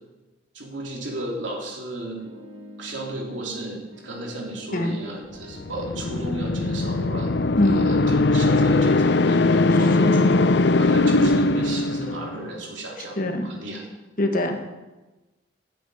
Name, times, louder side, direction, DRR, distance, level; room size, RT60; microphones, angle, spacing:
voice 1, 0.5-2.2 2.8-7.3 7.6-13.2 13.4-13.8, right 1 dB, 70° right, -1 dB, 3.4 m, -34 dB
sound 1, 2.2-7.5, left 1 dB, 85° right, 4.5 m, -44 dB
sound 2, 5.5-12.5, left 2 dB, 60° left, 0.6 m, -20 dB
voice 2, 7.6-8.0 10.0-10.1 13.2-13.5 14.2-14.7, left 1 dB, 45° left, 5 dB, 1.5 m, -23 dB
11.5 x 8.5 x 9.4 m, 1.1 s
head